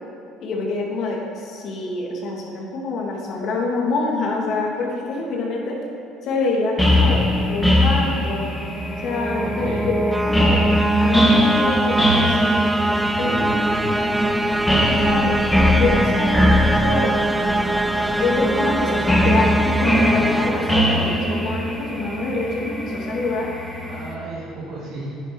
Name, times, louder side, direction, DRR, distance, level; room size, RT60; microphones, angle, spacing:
voice 1, 0.4-5.8 6.2-8.5 9.0-10.7 11.0-12.6 13.2-13.5 14.9-15.4 15.7-16.4 16.8-17.1 18.2-23.5, left 3 dB, 60° left, -2 dB, 2.6 m, -26 dB
sound 1, 6.8-24.1, left 1 dB, 5° left, 2.1 m, -22 dB
voice 2, 6.8-7.2 9.4-9.8 13.0-14.0 23.9-25.1, right 1 dB, 65° right, -7 dB, 2.6 m, -32 dB
sound 2, 8.7-21.7, right 2 dB, 10° right, 0.5 m, -23 dB
10.5 x 9.8 x 4.8 m, 2.6 s
supercardioid pair, 85°, 0 cm